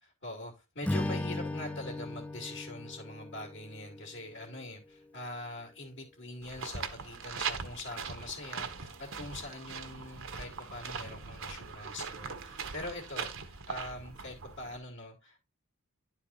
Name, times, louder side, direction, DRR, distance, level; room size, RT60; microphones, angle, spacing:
voice 1, 0.0-15.4, left 2 dB, 55° left, 2.6 m, -43 dB
Strum, 0.8-5.2, left 1 dB, 5° left, 0.5 m, -38 dB
sound 1, 6.4-14.8, right 5 dB, 60° right, 1.3 m, -40 dB
11.0 x 4.7 x 4.1 m
head